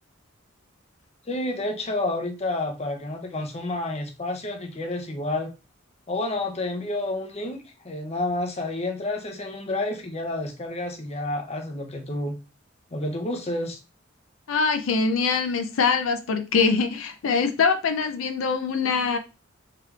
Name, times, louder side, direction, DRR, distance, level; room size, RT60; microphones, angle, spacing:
voice 1, 1.3-5.5 6.1-12.4 12.9-13.8, left 2 dB, 30° left, 0.6 m, -29 dB
voice 2, 14.5-19.2, left 5 dB, 80° left, 0.4 m, -23 dB
4.7 x 3.2 x 2.3 m
head